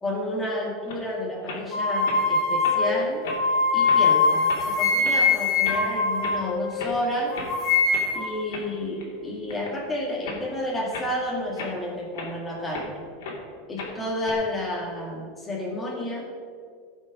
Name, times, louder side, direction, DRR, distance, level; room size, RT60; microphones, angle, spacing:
voice 1, 0.0-3.3 3.7-7.3 8.1-13.0 13.7-16.3, left 1 dB, 10° left, -4 dB, 2.1 m, -31 dB
sound 1, 0.9-1.0 1.4-1.7 2.1-2.2 2.6-2.8 3.2-3.5 3.8-4.0 4.5-4.6 5.0-5.2 5.6-5.8 6.2-6.4 6.7-7.0 7.3-7.5 7.9-8.1 8.5-9.1 9.5-9.8 10.2-10.4 10.9-11.1 11.6-12.9 13.2-13.4 13.8-14.3, left 4 dB, 80° left, 2.6 m, -36 dB
sound 2, 1.7-7.0 7.3-8.4, left 4 dB, 35° left, 2.2 m, -23 dB
15.5 x 5.6 x 5.0 m, 2.1 s
supercardioid pair, 145°, 0 cm